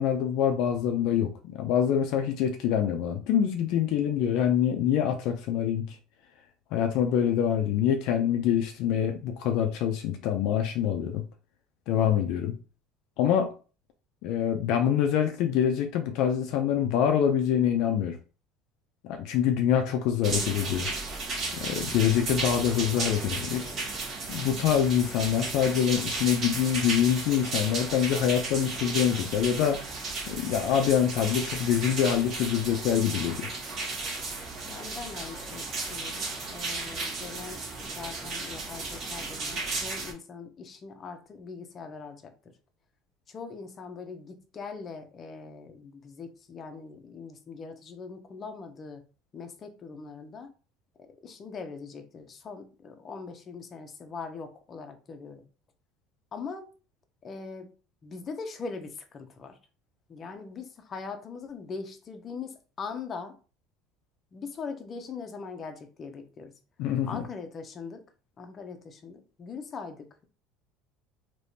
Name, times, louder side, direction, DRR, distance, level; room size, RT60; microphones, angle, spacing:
voice 1, 0.0-6.0 6.7-11.3 11.9-12.6 13.2-13.5 14.2-18.2 19.0-20.9 21.5-23.7 24.3-29.9 30.3-33.5 66.8-67.2, left 9 dB, 65° left, 5 dB, 0.5 m, -25 dB
sound 1, 20.2-40.1, right 3 dB, 45° right, 1.3 m, -34 dB
voice 2, 34.6-42.3 43.3-49.0 49.3-50.5 51.2-55.4 56.3-56.7 57.2-57.7 58.0-59.6 60.1-63.3 64.3-66.5 67.0-68.0 68.4-70.1, left 5 dB, 30° left, 6 dB, 0.7 m, -41 dB
3.4 x 2.9 x 2.7 m, 0.35 s
cardioid pair, 125°, 0 cm